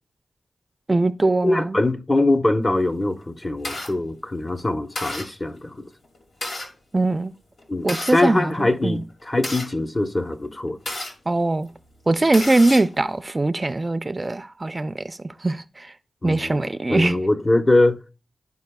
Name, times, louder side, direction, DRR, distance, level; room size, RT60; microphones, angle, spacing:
voice 1, 0.9-1.8 6.9-7.3 7.8-9.0 11.3-11.7 12.1-15.9 16.2-17.2, right 2 dB, 35° right, 0.4 m, -22 dB
voice 2, 1.4-5.9 7.7-10.8 16.2-18.0, left 2 dB, 30° left, 0.9 m, -22 dB
sound 1, 2.9-3.9 4.5-4.6 5.0-5.3 6.0-6.7 7.6-8.2 9.0-11.1 11.7-11.8 12.1-13.0, left 1 dB, 70° left, 2.2 m, -31 dB
12.5 x 4.7 x 2.2 m
cardioid pair, 45°, 0 cm